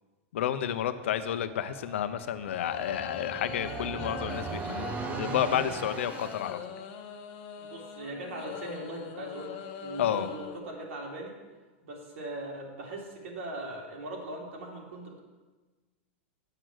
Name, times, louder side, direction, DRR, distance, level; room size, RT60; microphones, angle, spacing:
voice 1, 0.3-6.6 10.0-10.3, left 10 dB, 75° left, 11 dB, 0.7 m, -31 dB
sound 1, 1.0-6.5, right 5 dB, 20° right, 0.5 m, -39 dB
sound 2, 2.4-10.6, left 8 dB, 50° left, 1.1 m, -42 dB
voice 2, 7.6-11.3 11.8-15.2, right 2 dB, 80° right, -1 dB, 2.8 m, -40 dB
7.7 x 6.3 x 7.7 m, 1.3 s
supercardioid pair, 145°, 7 cm